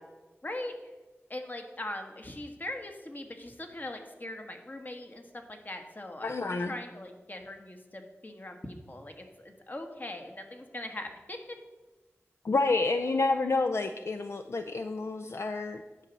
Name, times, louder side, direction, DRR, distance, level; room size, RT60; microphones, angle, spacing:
voice 1, 0.4-0.7 1.3-11.6, left 1 dB, 40° left, 5 dB, 1.3 m, -41 dB
voice 2, 6.2-6.7 12.4-15.8, left 3 dB, 70° left, 6 dB, 0.4 m, -29 dB
10.0 x 4.1 x 6.7 m, 1.2 s
wide cardioid pair, 50°, 5 cm